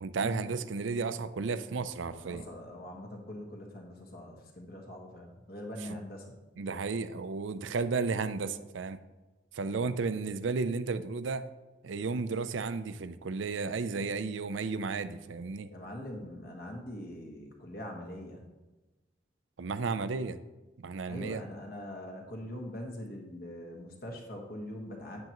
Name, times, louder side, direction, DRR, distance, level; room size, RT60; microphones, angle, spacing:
voice 1, 0.0-2.5 6.6-9.0 9.5-11.5 11.8-15.7 19.6-20.4 20.8-21.4, right 4 dB, 75° right, 12 dB, 0.5 m, -33 dB
voice 2, 2.0-6.3 9.6-9.9 15.7-18.5 21.1-25.2, left 1 dB, 50° left, 0 dB, 1.5 m, -43 dB
9.4 x 7.9 x 3.0 m, 1.1 s
head